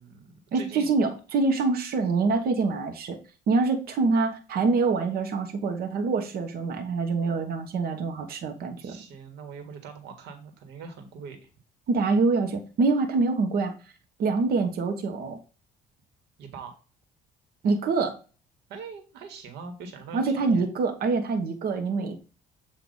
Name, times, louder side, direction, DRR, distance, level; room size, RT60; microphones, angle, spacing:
voice 1, 0.0-0.9 8.8-11.5 16.4-16.8 18.7-20.7, right 5 dB, 85° right, 5 dB, 1.7 m, -42 dB
voice 2, 0.5-3.2 3.5-9.0 11.9-13.7 14.2-15.4 17.6-18.2 20.1-22.2, right 4 dB, 60° right, 5 dB, 1.2 m, -25 dB
7.9 x 2.8 x 5.5 m, 0.34 s
cardioid pair, 110°, 17 cm